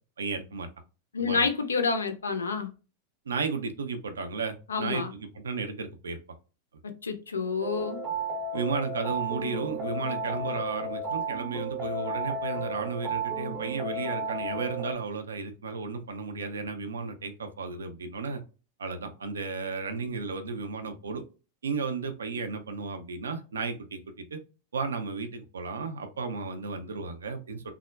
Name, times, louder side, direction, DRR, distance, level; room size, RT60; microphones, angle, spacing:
voice 1, 0.2-0.7 1.2-1.5 3.3-6.2 8.5-18.4 18.8-21.2 21.6-24.4 24.7-27.7, right 4 dB, 70° right, 0.4 m, -34 dB
voice 2, 1.1-2.7 4.7-5.1 6.8-8.0, left 5 dB, 75° left, 0.4 m, -29 dB
sound 1, 7.6-15.0, right 2 dB, 15° right, 0.6 m, -33 dB
3.4 x 2.0 x 2.2 m
figure-of-eight pair, 90°, 0 cm